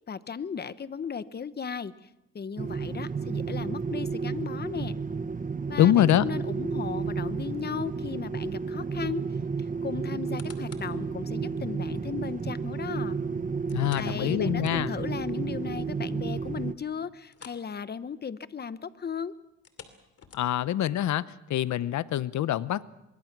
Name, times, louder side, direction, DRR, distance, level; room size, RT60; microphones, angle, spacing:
voice 1, 0.1-2.1 2.3-4.9 5.7-9.3 9.6-13.2 13.9-19.3, left 6 dB, 35° left, 15 dB, 1.1 m, -36 dB
sound 1, 2.6-16.7, right 5 dB, 25° right, 1.0 m, -32 dB
voice 2, 5.8-6.2 13.7-14.9 20.3-21.2 21.5-22.9, left 12 dB, 70° left, 18 dB, 0.8 m, -24 dB
sound 2, 10.1-11.0 11.5-11.6 13.7-15.2 15.5-15.6 16.0-16.1 17.3-17.7 18.0-18.2 19.5-20.8 21.4-21.5, left 7 dB, 55° left, 2.7 m, -50 dB
24.0 x 23.0 x 6.1 m, 0.90 s
cardioid pair, 90°, 30 cm